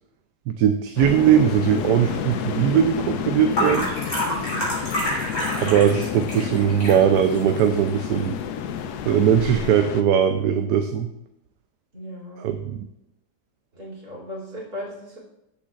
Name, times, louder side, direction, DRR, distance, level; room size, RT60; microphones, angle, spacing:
voice 1, 0.5-3.9 5.5-8.3 9.1-11.1 12.4-12.9, right 9 dB, 80° right, 7 dB, 1.2 m, -20 dB
sound 1, 1.0-10.0, left 8 dB, 75° left, 1.1 m, -30 dB
sound 2, 1.0-9.7, equal, 60° left, 3.8 m, -31 dB
voice 2, 4.3-4.7 11.9-12.4 13.7-15.2, equal, 65° right, -3 dB, 3.3 m, -37 dB
14.0 x 7.1 x 2.4 m, 0.86 s
omnidirectional pair, 1.7 m